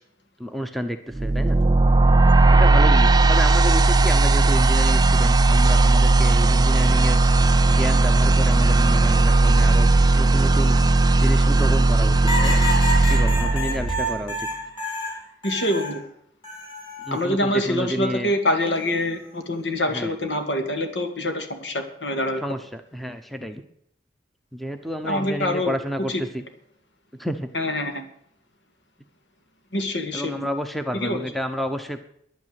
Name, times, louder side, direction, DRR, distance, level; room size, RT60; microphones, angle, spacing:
voice 1, 0.4-1.6 2.5-7.2 7.7-9.9 10.1-10.8 11.2-12.6 13.1-14.5 17.1-18.3 19.9-20.1 22.4-23.6 24.5-26.4 27.2-27.5 30.1-32.0, equal, ahead, 7 dB, 0.9 m, -30 dB
sound 1, 1.2-14.2, right 3 dB, 20° right, 0.4 m, -17 dB
sound 2, 12.3-16.0 16.4-17.2 18.6-19.0, equal, 25° left, 4.3 m, -29 dB
sound 3, 12.5-12.6 12.9-13.1 13.3-13.5 13.8-14.0, right 1 dB, 55° left, 2.6 m, -32 dB
voice 2, 15.4-16.0 17.1-22.4 25.0-25.7 26.1-26.2 27.5-28.1 29.7-30.5 30.9-31.2, left 1 dB, 75° left, 6 dB, 2.3 m, -25 dB
10.5 x 9.5 x 8.9 m, 0.69 s
head